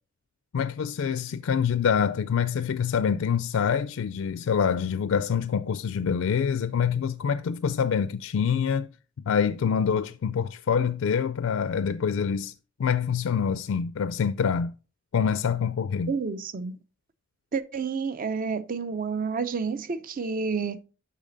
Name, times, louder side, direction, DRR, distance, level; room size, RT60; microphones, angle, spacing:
voice 1, 0.5-8.9 9.3-12.5 12.8-14.7 15.1-16.1, left 7 dB, 75° left, 0.4 m, -26 dB
voice 2, 16.1-16.8 17.5-20.8, right 5 dB, 45° right, 0.5 m, -30 dB
7.3 x 5.8 x 3.9 m
head